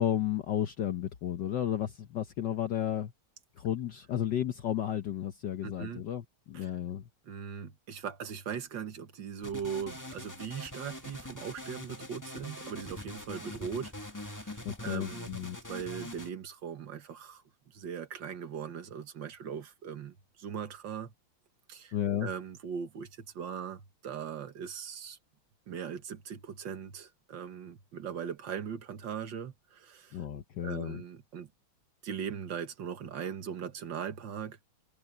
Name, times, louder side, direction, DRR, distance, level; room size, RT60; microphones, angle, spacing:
voice 1, 0.0-3.1 3.6-7.1 14.6-15.6 21.9-22.3 30.1-31.0, left 10 dB, 60° left, 1.5 m, -33 dB
voice 2, 5.6-6.0 6.5-6.7 7.3-21.1 21.7-22.0 22.2-25.2 25.7-30.2 30.6-31.5 32.0-34.6, right 7 dB, 65° right, 2.1 m, -40 dB
sound 1, 9.4-16.3, left 1 dB, 10° left, 1.6 m, -43 dB
omnidirectional pair, 2.3 m